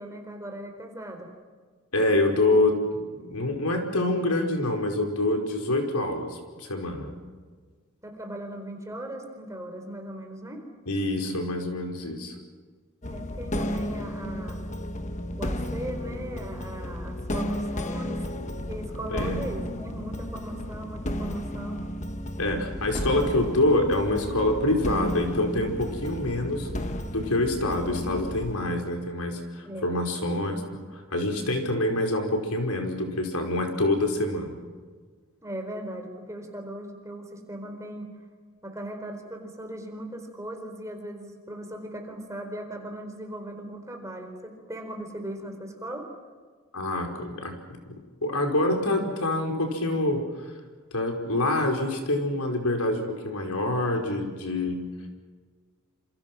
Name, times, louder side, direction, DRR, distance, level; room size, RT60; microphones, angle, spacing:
voice 1, 0.0-1.3 8.0-10.6 13.0-14.6 15.4-18.2 18.7-21.8 29.6-30.0 35.4-38.1 38.6-46.1, right 1 dB, 15° right, 4 dB, 4.3 m, -38 dB
voice 2, 1.9-7.1 10.9-12.3 19.1-19.4 22.4-26.7 27.1-34.6 46.7-47.5 48.2-50.2 50.9-54.8, left 1 dB, 85° left, 3 dB, 5.1 m, -26 dB
sound 1, 13.0-28.6, equal, 35° left, 1.3 m, -33 dB
28.5 x 28.0 x 6.2 m, 1.5 s
head